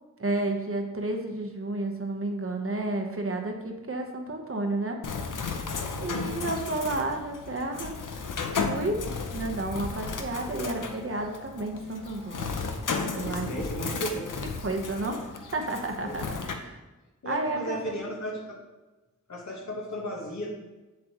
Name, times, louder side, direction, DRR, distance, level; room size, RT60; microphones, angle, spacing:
voice 1, 0.2-5.0 6.0-8.0 8.5-9.0 9.3-12.5 13.1-13.5 13.8-13.9 14.6-16.8 17.2-17.8, right 2 dB, 45° right, 3 dB, 1.0 m, -31 dB
Bird, 5.0-16.5, left 5 dB, 85° left, 0.8 m, -34 dB
voice 2, 5.7-6.2 12.3-12.8 13.2-14.3 16.0-16.5 17.2-18.6 19.3-20.5, equal, 65° left, -3 dB, 1.4 m, -36 dB
7.6 x 7.5 x 3.0 m, 1.1 s
wide cardioid pair, 105°, 31 cm